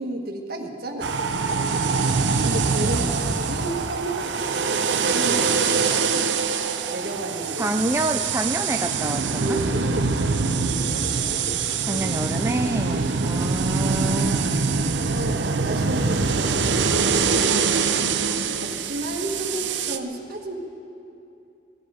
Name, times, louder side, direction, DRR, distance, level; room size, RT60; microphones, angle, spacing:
voice 1, 0.0-2.0 2.4-4.2 4.6-6.2 6.9-7.7 9.4-10.1 10.5-11.6 11.9-12.1 12.8-14.2 15.0-17.7 18.1-18.3 18.6-20.6, right 1 dB, 60° right, 2 dB, 1.6 m, -33 dB
sound 1, 1.0-20.0, right 5 dB, 85° right, 0.7 m, -24 dB
voice 2, 2.8-3.7 7.6-9.6 11.9-14.5, right 1 dB, 15° right, 3 dB, 0.5 m, -28 dB
19.0 x 14.0 x 5.0 m, 2.7 s
head